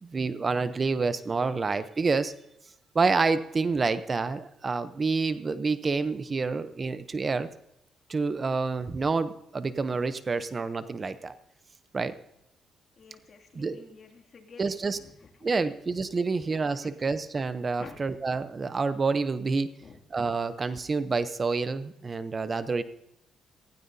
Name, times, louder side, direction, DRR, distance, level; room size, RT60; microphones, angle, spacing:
voice 1, 0.0-2.3 2.9-7.5 8.1-11.4 11.9-12.2 13.5-13.8 14.6-15.0 15.4-19.7 20.1-22.8, right 4 dB, 35° right, 13 dB, 0.7 m, -28 dB
voice 2, 13.0-15.5 16.2-16.3 16.6-16.9 17.8-18.0 19.8-20.0, left 4 dB, 45° left, 3 dB, 2.4 m, -50 dB
18.5 x 16.0 x 2.8 m, 0.79 s
cardioid pair, 90°, 0 cm